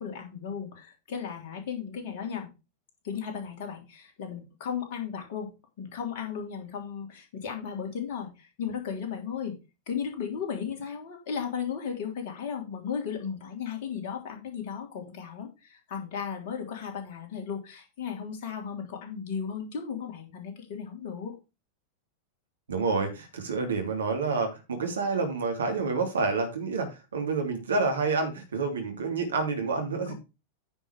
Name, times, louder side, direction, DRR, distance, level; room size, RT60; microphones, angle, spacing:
voice 1, 0.0-2.5 3.0-9.6 9.9-21.3 30.1-30.2, left 7 dB, 50° left, 2 dB, 3.2 m, -35 dB
voice 2, 22.7-30.1, right 4 dB, 70° right, 3 dB, 2.9 m, -28 dB
9.6 x 5.5 x 4.8 m, 0.28 s
figure-of-eight pair, 90°, 0 cm